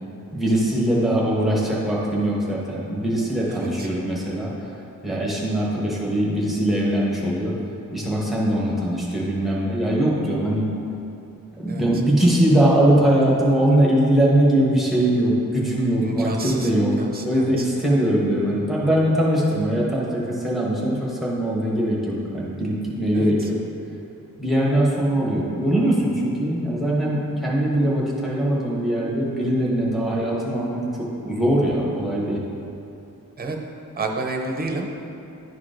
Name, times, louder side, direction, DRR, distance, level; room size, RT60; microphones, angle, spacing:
voice 1, 0.3-4.5 5.0-7.6 7.9-10.7 11.6-16.9 17.2-23.6 24.4-32.4, right 1 dB, ahead, -6 dB, 1.0 m, -21 dB
voice 2, 3.5-3.9 11.7-11.8 16.0-16.7 17.0-17.6 23.1-23.5 33.4-33.6 34.0-35.0, right 2 dB, 25° right, 1 dB, 0.6 m, -30 dB
11.0 x 4.6 x 2.5 m, 2.8 s
wide cardioid pair, 170°, 35 cm